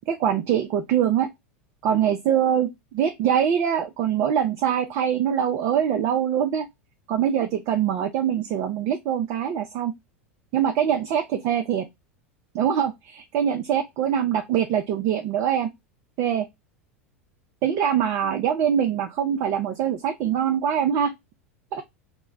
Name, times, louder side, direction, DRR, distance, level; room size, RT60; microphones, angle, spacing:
voice 1, 0.1-1.3 1.8-2.7 2.9-6.7 7.1-9.9 10.5-11.9 12.5-15.7 16.2-16.5 17.6-21.1 21.7-21.8, right 9 dB, 40° right, 0.4 m, -23 dB
2.2 x 2.1 x 3.7 m
figure-of-eight pair, 85°, 7 cm